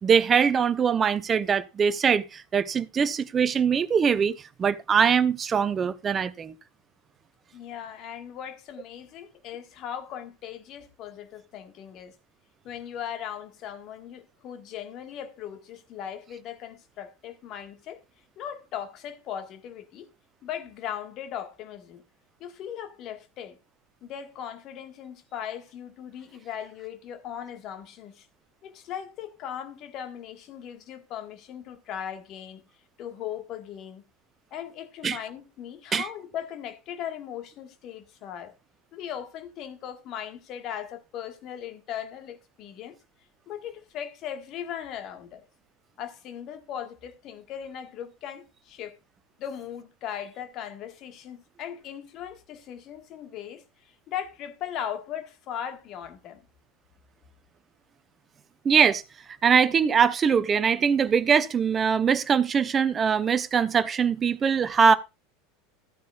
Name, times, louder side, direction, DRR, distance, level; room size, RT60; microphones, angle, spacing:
voice 1, 0.0-6.5 35.0-35.2 35.9-36.0 58.6-59.0 59.4-64.9, right 6 dB, 30° right, 0.8 m, -22 dB
voice 2, 7.5-12.1 12.6-18.0 18.4-20.1 20.4-22.0 22.4-23.6 24.0-28.3 28.6-32.6 33.0-34.0 34.5-38.5 38.9-43.0 43.5-45.4 46.0-49.0 49.4-53.6 54.1-56.4 64.9-65.0, left 9 dB, 45° left, 1.6 m, -38 dB
14.0 x 9.4 x 2.4 m
figure-of-eight pair, 80°, 0 cm